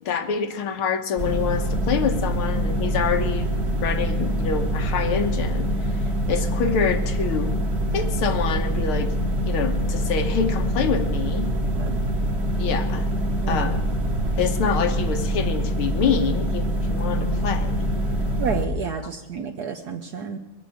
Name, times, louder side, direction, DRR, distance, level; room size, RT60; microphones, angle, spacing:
voice 1, 0.0-3.5 3.8-6.0 6.3-7.5 7.9-9.1 9.5-11.5 12.6-13.1 13.5-13.8 14.4-17.8, left 6 dB, 85° left, 8 dB, 2.1 m, -26 dB
sound 1, 1.2-18.7, right 1 dB, 35° right, 1.8 m, -24 dB
voice 2, 18.4-20.4, right 7 dB, 60° right, 6 dB, 1.1 m, -30 dB
22.0 x 8.4 x 7.7 m, 1.1 s
omnidirectional pair, 2.3 m